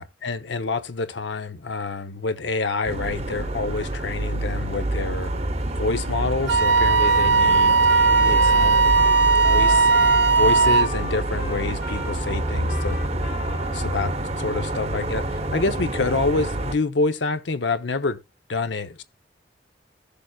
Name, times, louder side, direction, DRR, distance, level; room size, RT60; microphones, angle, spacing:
voice 1, 0.0-5.3 5.8-8.9 9.4-9.9 10.4-13.0 13.7-18.2 18.5-19.0, left 3 dB, 80° left, 0.8 m, -27 dB
sound 1, 2.8-16.7, right 1 dB, 35° right, 0.8 m, -27 dB
Trumpet, 6.4-14.2, left 1 dB, 50° left, 1.5 m, -37 dB
Wind instrument woodwind instrument, 6.5-10.9, right 4 dB, 70° right, 0.6 m, -17 dB
16.5 x 6.8 x 2.3 m
head